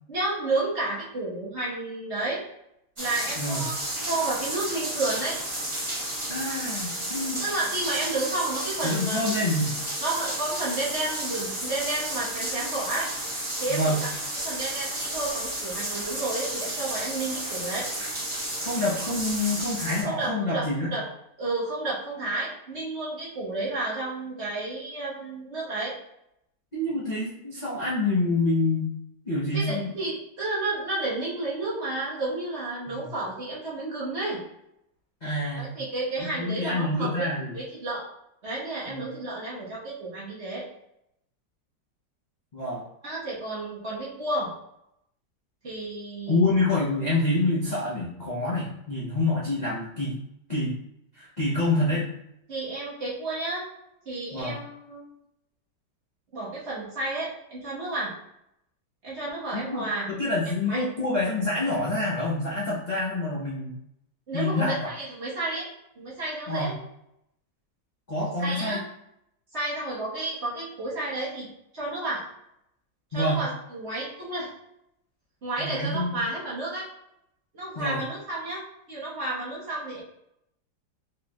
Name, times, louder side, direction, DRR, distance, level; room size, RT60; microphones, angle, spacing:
voice 1, 0.1-2.4 3.0-5.4 7.4-9.2 10.0-13.1 13.6-14.1 14.4-17.9 20.0-20.7 20.9-21.0 21.4-25.9 29.5-34.4 35.6-38.1 38.4-40.6 43.0-44.5 45.6-46.5 52.5-53.7 54.1-55.0 56.3-58.1 59.0-60.1 60.7-60.8 64.3-65.7 66.0-66.8 68.4-68.8 69.5-71.5 71.7-72.3 73.1-74.5 75.4-76.9 77.5-78.6 78.9-80.0, right 2 dB, 45° right, -7 dB, 1.2 m, -31 dB
sound 1, 3.0-20.0, right 1 dB, 20° right, 0.9 m, -32 dB
voice 2, 6.3-7.5 8.8-9.7 13.7-14.0 18.6-20.9 26.7-28.9 29.2-29.9 32.9-33.1 35.2-35.7 36.2-37.5 38.9-39.0 42.5-42.8 46.3-50.2 50.5-50.8 51.2-52.1 54.3-54.6 59.5-63.7 64.3-64.9 66.5-66.7 68.1-68.8 73.1-73.4 75.6-76.2 77.8-78.0, left 2 dB, 40° left, -8 dB, 0.6 m, -27 dB
4.5 x 3.2 x 2.3 m, 0.79 s
omnidirectional pair, 1.9 m